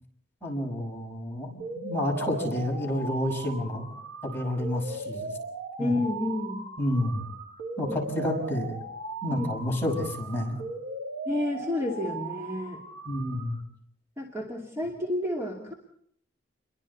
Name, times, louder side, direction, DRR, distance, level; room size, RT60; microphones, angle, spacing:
voice 1, 0.4-3.9 4.2-5.3 5.8-5.9 6.8-7.2 7.8-8.8 9.2-10.6 13.1-13.6, left 1 dB, 10° left, -2 dB, 6.2 m, -30 dB
sound 1, 1.6-13.6, right 2 dB, 70° right, 2.7 m, -38 dB
voice 2, 5.8-6.6 9.3-9.5 11.3-12.8 14.2-15.7, left 1 dB, 15° right, -1 dB, 2.7 m, -30 dB
29.0 x 23.0 x 4.3 m, 0.64 s
head